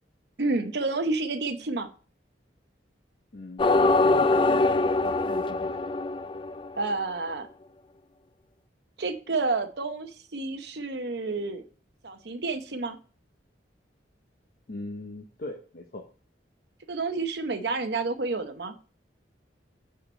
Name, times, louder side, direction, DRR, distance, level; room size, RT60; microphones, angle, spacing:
voice 1, 0.4-1.9 6.8-7.5 9.0-11.6 12.0-13.0 16.9-18.7, right 3 dB, 65° right, 7 dB, 0.9 m, -29 dB
voice 2, 3.3-5.7 14.7-16.0, left 2 dB, 50° left, 3 dB, 0.8 m, -39 dB
sound 1, 3.6-6.9, left 3 dB, 25° left, 0.3 m, -23 dB
6.9 x 4.8 x 4.4 m, 0.38 s
head